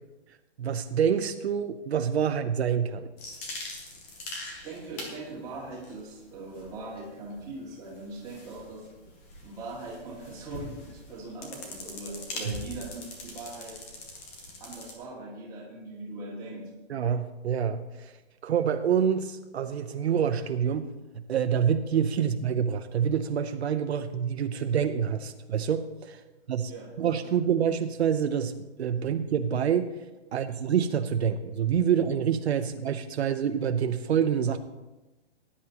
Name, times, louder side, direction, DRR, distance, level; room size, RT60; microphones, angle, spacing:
voice 1, 0.6-3.1 16.9-18.1 18.4-20.9 21.3-26.2 26.5-26.7 27.0-28.5 28.8-29.9 30.3-34.6, right 8 dB, 70° right, 8 dB, 0.8 m, -27 dB
sound 1, 3.2-14.9, left 2 dB, 15° left, 0.8 m, -43 dB
voice 2, 4.5-8.9 9.4-13.8 14.6-16.7 26.2-26.3 26.6-26.9 30.3-30.4, right 2 dB, 10° right, -5 dB, 2.1 m, -41 dB
18.5 x 10.0 x 2.9 m, 1.1 s
hypercardioid pair, 180°, 34 cm